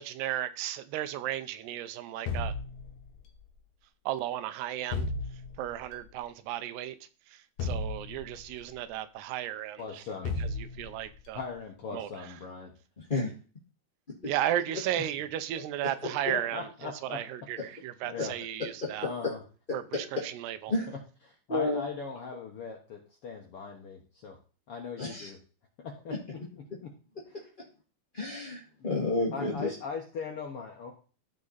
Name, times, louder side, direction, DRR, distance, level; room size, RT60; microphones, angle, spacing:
voice 1, 0.0-2.5 4.1-5.1 5.6-7.0 7.3-10.0 10.4-11.4 11.9-12.1 14.2-19.1 19.7-20.7, right 12 dB, 90° right, 12 dB, 2.9 m, -34 dB
sound 1, 2.3-3.4 4.9-5.9 7.6-8.7 10.3-11.2, left 3 dB, 65° left, 2.2 m, -34 dB
voice 2, 9.8-10.4 11.3-12.7 15.0-15.1 15.5-15.6 16.3-17.2 17.6-17.7 18.0-18.3 19.0-19.4 20.9-21.0 21.5-24.4 24.7-25.4 25.8-26.9 27.3-27.5 29.3-30.9, left 5 dB, 85° left, 1 dB, 1.2 m, -40 dB
voice 3, 21.5-21.8 25.0-25.3 28.1-29.7, left 2 dB, 25° left, -4 dB, 1.1 m, -30 dB
15.0 x 5.0 x 4.1 m, 0.37 s
omnidirectional pair, 4.6 m